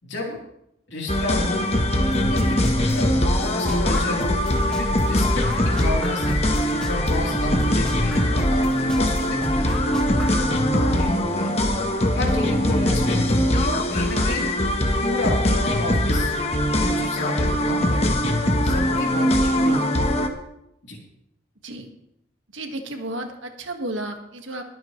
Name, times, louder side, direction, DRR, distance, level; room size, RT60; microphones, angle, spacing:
voice 1, 0.0-0.4 0.9-1.7 2.3-4.4 4.7-9.8 10.4-11.5 12.2-14.5 15.0-16.3 16.7-18.3 18.6-19.9 20.8-21.0, left 1 dB, 65° left, -2 dB, 3.6 m, -31 dB
sound 1, 1.1-20.3, left 1 dB, 30° left, 1.2 m, -22 dB
sound 2, 2.1-10.5, equal, 5° left, 1.3 m, -30 dB
voice 2, 22.5-24.6, right 1 dB, 80° right, 4 dB, 1.7 m, -33 dB
21.5 x 9.1 x 3.2 m, 0.81 s
head